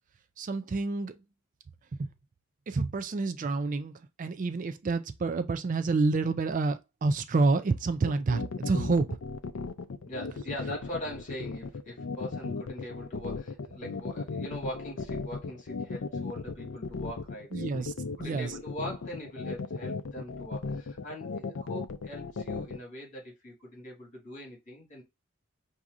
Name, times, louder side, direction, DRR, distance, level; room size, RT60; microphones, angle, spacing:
voice 1, 0.4-1.1 2.0-2.1 2.7-9.2 17.5-17.9 18.2-18.5, right 3 dB, 35° right, 0.3 m, -28 dB
sound 1, 8.1-22.8, left 4 dB, 60° left, 0.5 m, -36 dB
voice 2, 10.0-17.9 18.2-25.0, left 1 dB, 35° left, 1.9 m, -42 dB
5.9 x 2.7 x 2.5 m
head